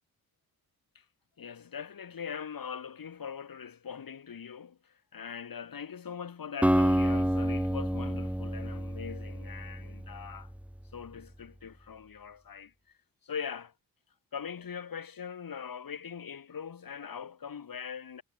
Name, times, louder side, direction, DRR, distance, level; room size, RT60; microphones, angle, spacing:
voice 1, 1.4-10.5 10.9-12.7 13.2-13.7 14.3-18.2, left 7 dB, 65° left, 7.6 m, -41 dB
Acoustic guitar, 6.6-10.7, equal, 5° right, 2.9 m, -29 dB
cardioid pair, 70°, 37 cm